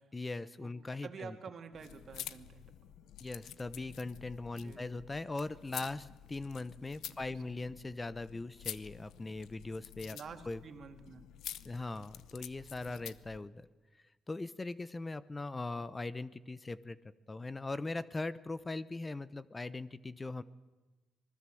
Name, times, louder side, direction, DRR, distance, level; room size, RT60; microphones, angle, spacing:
voice 1, 0.1-1.4 3.2-10.2 10.5-10.6 11.6-13.7 14.3-17.0 17.3-20.4, left 2 dB, 20° left, 16 dB, 0.9 m, -40 dB
voice 2, 1.0-2.6 4.6-5.0 7.1-7.8 10.1-11.2 12.8-13.0, right 6 dB, 55° right, 6 dB, 2.6 m, -49 dB
sound 1, 1.7-13.4, left 11 dB, 80° left, 0.9 m, -49 dB
26.0 x 20.5 x 7.8 m, 1.2 s
cardioid pair, 90°, 0 cm